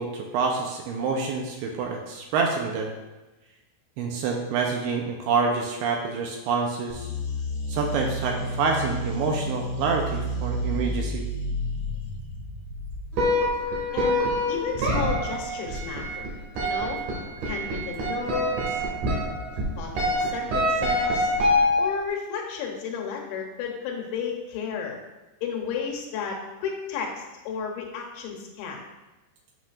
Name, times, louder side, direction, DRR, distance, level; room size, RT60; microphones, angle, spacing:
voice 1, 0.0-3.0 4.0-7.1 7.7-11.3, right 4 dB, 80° right, 1 dB, 2.4 m, -27 dB
sound 1, 6.9-13.4, equal, 65° left, 2.2 m, -31 dB
sound 2, 13.1-22.1, equal, 60° right, 2.5 m, -26 dB
voice 2, 13.9-16.3 16.6-17.0 17.5-18.8 19.8-21.3 21.8-25.0 25.4-28.8, left 6 dB, 90° left, 1 dB, 3.2 m, -33 dB
7.9 x 6.3 x 2.4 m, 1.1 s
omnidirectional pair, 5.0 m